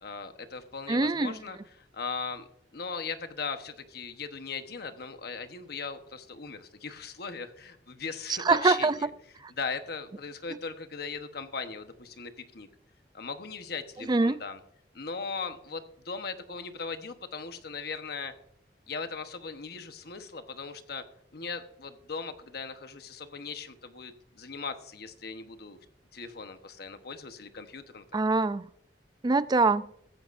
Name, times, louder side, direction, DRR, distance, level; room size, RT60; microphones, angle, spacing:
voice 1, 0.0-2.5 2.7-9.1 9.5-12.7 13.1-14.6 14.9-18.3 18.9-21.0 21.3-25.8 26.1-28.2, left 5 dB, 60° left, 8 dB, 1.1 m, -38 dB
voice 2, 0.9-1.3 8.4-8.9 14.1-14.4 28.1-28.6 29.2-29.8, right 3 dB, 25° right, 16 dB, 0.4 m, -23 dB
15.0 x 14.0 x 2.6 m, 0.71 s
head